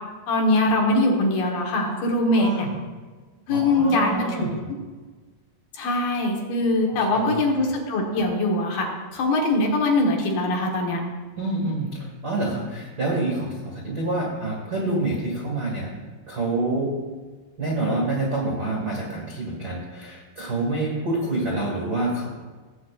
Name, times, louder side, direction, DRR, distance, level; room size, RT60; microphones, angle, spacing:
voice 1, 0.3-2.7 3.5-4.6 5.7-8.9 9.1-11.0, left 2 dB, 70° left, 0 dB, 2.8 m, -22 dB
voice 2, 2.3-2.7 3.5-4.6 6.9-7.4 11.4-15.9 16.3-16.9 17.6-22.3, right 2 dB, 65° right, -3 dB, 0.9 m, -27 dB
17.0 x 8.3 x 2.4 m, 1.4 s
omnidirectional pair, 4.7 m